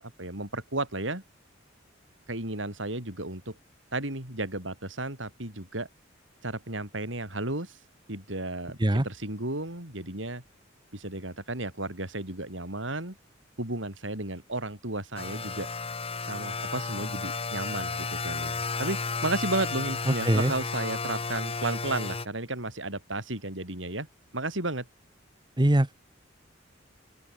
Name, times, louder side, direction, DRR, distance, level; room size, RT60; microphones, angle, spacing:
voice 1, 0.0-1.2 2.3-3.6 3.9-5.9 6.4-7.8 8.1-10.4 10.9-13.2 13.6-15.7 16.2-24.1 24.3-24.9, right 2 dB, 70° right, 6.8 m, -33 dB
sound 1, 15.2-22.3, left 4 dB, 30° left, 2.2 m, -33 dB
voice 2, 20.1-20.5 25.6-25.9, right 1 dB, 25° right, 1.0 m, -22 dB
open air
head